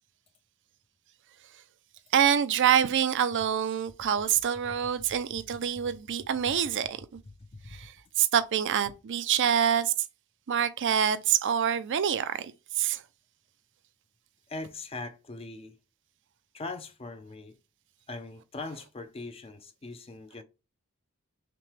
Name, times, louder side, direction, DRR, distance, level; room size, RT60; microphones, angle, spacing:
voice 1, 2.1-7.0 7.7-9.9 10.5-12.5 12.8-13.0, right 9 dB, 55° right, 0.4 m, -26 dB
voice 2, 7.2-7.8 14.5-15.8 16.5-17.6 18.1-20.4, left 3 dB, 25° left, 0.5 m, -41 dB
5.9 x 2.2 x 3.2 m
head